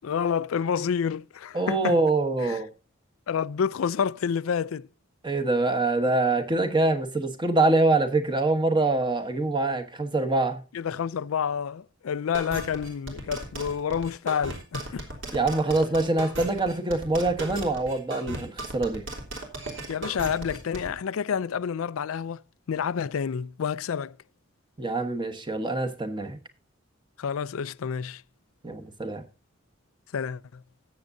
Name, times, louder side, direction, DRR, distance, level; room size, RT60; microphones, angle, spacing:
voice 1, 0.0-2.0 2.4-2.6 3.3-4.9 10.7-15.1 19.9-22.4 22.7-24.2 27.2-28.2 30.1-30.6, left 7 dB, 85° left, 0.4 m, -29 dB
voice 2, 1.5-2.7 5.2-10.6 15.3-19.1 24.8-26.4 28.6-29.2, right 2 dB, 20° right, 1.2 m, -25 dB
sound 1, 12.3-20.9, right 2 dB, 60° right, 3.1 m, -36 dB
19.5 x 7.3 x 2.6 m
head